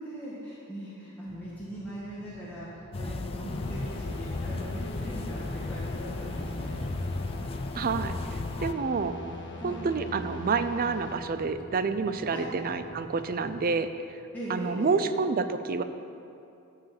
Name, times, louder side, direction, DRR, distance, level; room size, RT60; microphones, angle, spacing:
voice 1, 0.0-6.8 9.6-9.8 12.3-12.4 14.3-15.0, right 1 dB, 10° left, -9 dB, 1.6 m, -40 dB
sound 1, 1.2-13.7, left 2 dB, 75° left, 1.2 m, -48 dB
sound 2, 2.9-8.7, left 3 dB, 25° left, 0.3 m, -35 dB
sound 3, 3.5-11.1, left 1 dB, 55° left, 1.3 m, -42 dB
voice 2, 7.7-8.1 8.6-9.2 9.6-13.9 14.5-15.8, right 4 dB, 40° right, 10 dB, 0.5 m, -28 dB
11.5 x 4.9 x 7.6 m, 2.6 s
head